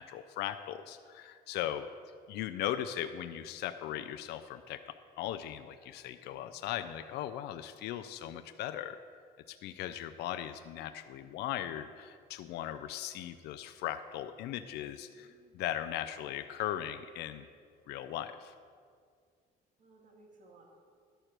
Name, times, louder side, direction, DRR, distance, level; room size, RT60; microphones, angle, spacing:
voice 1, 0.0-1.9 2.3-9.0 9.5-17.5 17.9-18.5, left 11 dB, 80° left, 9 dB, 0.4 m, -38 dB
voice 2, 6.1-6.7 15.1-15.6 17.9-18.2 19.8-20.6, right 3 dB, 50° right, -1 dB, 2.0 m, -62 dB
11.0 x 4.5 x 6.5 m, 2.1 s
cardioid pair, 110°, 17 cm